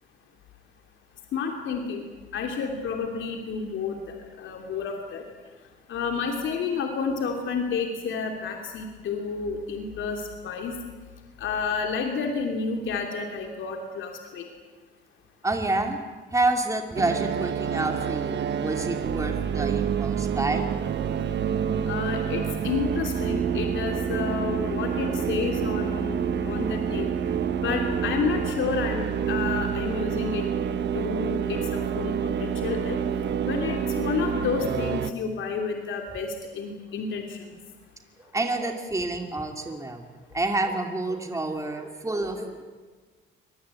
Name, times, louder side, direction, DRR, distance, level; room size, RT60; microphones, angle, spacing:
voice 1, 1.3-2.0 2.3-5.2 5.9-10.8 11.4-14.4 21.9-27.1 27.5-30.4 30.9-33.0 33.4-37.4, left 5 dB, 75° left, 3 dB, 3.0 m, -30 dB
voice 2, 15.4-16.0 16.3-20.7 38.3-40.0 40.3-42.6, right 2 dB, 15° right, 4 dB, 2.7 m, -28 dB
sound 1, 17.0-35.1, right 7 dB, 60° right, 1.4 m, -28 dB
23.5 x 20.0 x 8.5 m, 1.4 s
cardioid pair, 90°, 20 cm